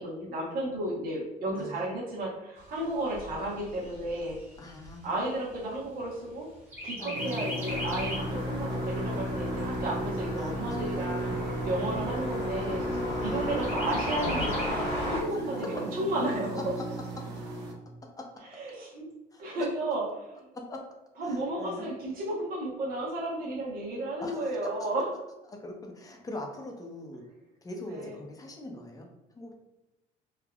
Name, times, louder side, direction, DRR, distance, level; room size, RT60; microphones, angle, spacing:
voice 1, 0.0-4.4 5.0-6.5 6.8-11.2 11.7-12.8 13.2-16.6 18.5-19.1 19.4-20.4 21.2-25.0 27.9-28.1, right 1 dB, 60° right, -5 dB, 0.9 m, -33 dB
voice 2, 1.6-1.9 4.6-5.1 5.8-5.9 7.0-7.5 8.7-8.9 10.4-12.2 13.0-13.8 15.3-16.0 16.6-16.8 18.0-18.4 19.3-19.7 20.5-20.8 21.2-21.9 24.2-24.7 25.5-27.2 27.6-29.6, left 1 dB, 20° left, 2 dB, 0.6 m, -43 dB
Chirp tweet, 2.6-6.3 6.7-8.4 8.8-8.9 9.3-10.3 10.9-11.0 11.3-11.4 11.8-12.4 13.6-14.7, left 1 dB, 10° right, 1.2 m, -39 dB
sound 1, 7.1-17.7, right 1 dB, 85° right, 0.7 m, -34 dB
sound 2, 7.7-15.2, left 1 dB, 85° left, 1.2 m, -35 dB
3.4 x 2.3 x 2.3 m, 0.97 s
cardioid pair, 110°, 17 cm